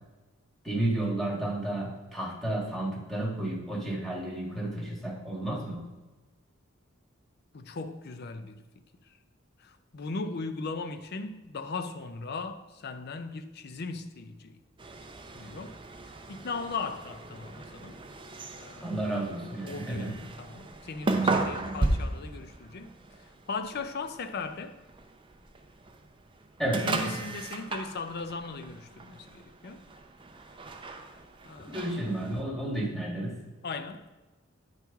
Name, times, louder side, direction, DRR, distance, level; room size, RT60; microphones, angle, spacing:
voice 1, 0.6-5.9 18.8-20.1 26.6-27.2 31.7-33.4, right 1 dB, ahead, 1.5 m, -32 dB
voice 2, 7.5-8.6 9.6-14.6 15.3-15.8 16.3-18.0 18.6-18.9 19.6-23.0 23.5-24.8 26.8-29.8 31.4-31.8 33.6-34.1, left 4 dB, 50° left, 0.5 m, -38 dB
sound 1, 14.8-32.4, right 2 dB, 25° right, 0.6 m, -36 dB
9.3 x 4.6 x 3.5 m
head